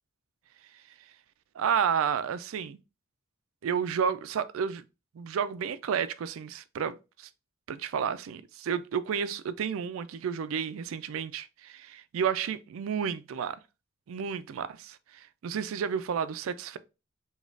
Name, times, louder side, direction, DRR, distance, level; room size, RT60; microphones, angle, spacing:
voice 1, 1.6-2.8 3.6-4.8 5.1-7.3 7.7-13.6 14.1-16.8, right 7 dB, 80° right, 0.3 m, -31 dB
5.0 x 2.3 x 2.4 m
head